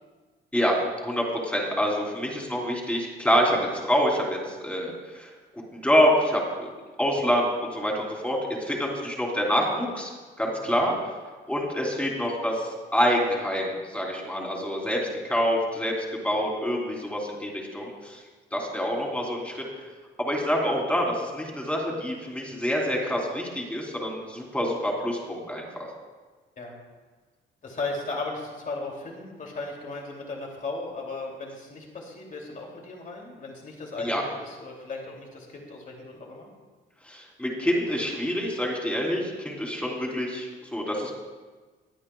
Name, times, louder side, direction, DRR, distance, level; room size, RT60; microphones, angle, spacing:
voice 1, 1.0-5.3 5.7-6.7 7.0-10.1 10.4-10.9 11.5-18.2 18.5-19.6 20.2-25.9 34.0-34.2 37.0-41.1, equal, 5° left, -2 dB, 3.4 m, -26 dB
voice 2, 27.6-36.5, left 3 dB, 45° left, 0 dB, 2.7 m, -36 dB
21.5 x 9.3 x 2.3 m, 1.4 s
cardioid pair, 90°, 20 cm